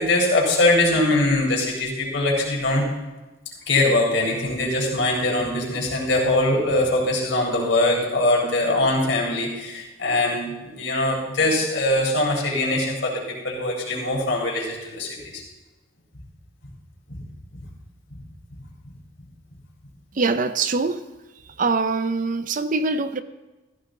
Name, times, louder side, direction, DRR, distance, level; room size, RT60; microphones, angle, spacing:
voice 1, 0.0-2.9 3.7-15.4 17.1-17.2 17.5-17.6 18.1-18.2, left 2 dB, 70° left, 4.0 m, -22 dB
voice 2, 20.1-21.1 21.6-23.2, right 3 dB, 45° right, 0.5 m, -23 dB
15.5 x 14.5 x 3.9 m
head